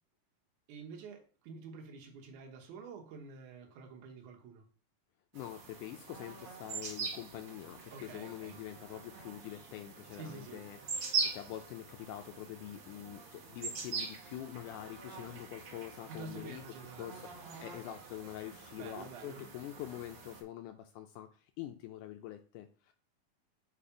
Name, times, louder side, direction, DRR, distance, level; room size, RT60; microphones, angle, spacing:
voice 1, 0.7-4.6 7.9-8.6 10.1-10.7 16.1-17.3 18.8-19.4, right 4 dB, 65° right, 2.4 m, -48 dB
voice 2, 5.3-16.6 17.0-22.9, left 13 dB, 80° left, 1.8 m, -45 dB
sound 1, 5.3-20.4, right 4 dB, 50° right, 1.8 m, -43 dB
5.3 x 4.3 x 4.9 m
omnidirectional pair, 4.0 m